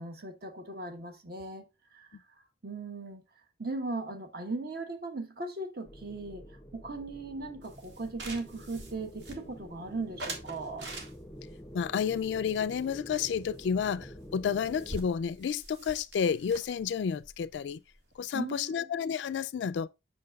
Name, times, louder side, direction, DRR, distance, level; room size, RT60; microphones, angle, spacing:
voice 1, 0.0-1.6 1.9-2.2 2.6-3.2 3.6-6.4 6.7-10.9 18.3-18.9, right 3 dB, 60° right, 1.2 m, -38 dB
sound 1, 5.9-15.1, equal, 15° left, 0.5 m, -48 dB
sound 2, 7.6-9.7 10.2-11.5 12.1-13.3 13.6-13.7 14.0-14.1 14.3-18.2, right 2 dB, 85° right, 1.7 m, -45 dB
voice 2, 11.7-17.8 18.2-19.9, left 7 dB, 85° left, 0.3 m, -31 dB
7.6 x 6.1 x 2.3 m
head